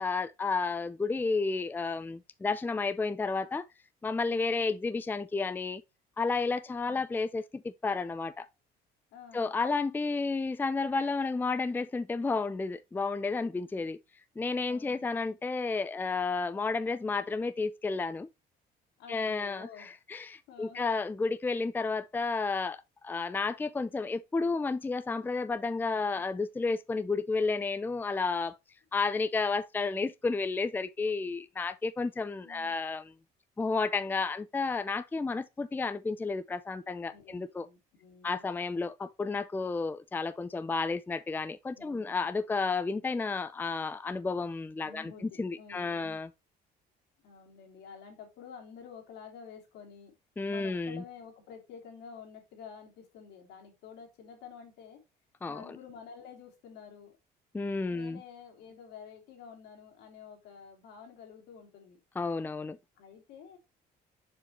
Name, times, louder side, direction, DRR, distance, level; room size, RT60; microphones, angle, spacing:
voice 1, 0.0-3.6 4.0-5.8 6.2-8.5 9.3-14.0 14.4-18.3 19.1-28.6 28.9-33.1 33.6-37.7 38.2-46.3 50.4-51.0 55.4-55.8 57.5-58.2 62.2-62.8, left 4 dB, 10° left, 0.4 m, -32 dB
voice 2, 9.1-9.5 14.7-15.2 19.0-19.9 20.5-20.9 25.8-26.2 32.1-32.7 37.1-38.5 41.7-42.3 44.8-46.2 47.2-50.1 50.5-55.0 55.4-57.1 57.9-62.0 63.0-63.6, left 6 dB, 85° left, 2.8 m, -50 dB
6.9 x 4.8 x 3.0 m
cardioid pair, 110°, 17 cm